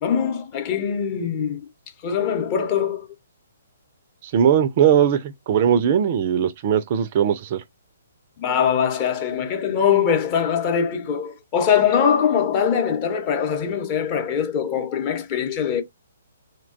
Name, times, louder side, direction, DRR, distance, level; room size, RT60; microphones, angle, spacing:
voice 1, 0.0-1.7 2.0-3.1 8.4-15.8, left 7 dB, 30° left, 0.8 m, -22 dB
voice 2, 4.2-7.6, right 8 dB, 40° right, 0.3 m, -19 dB
2.7 x 2.2 x 2.5 m
figure-of-eight pair, 130°, 0 cm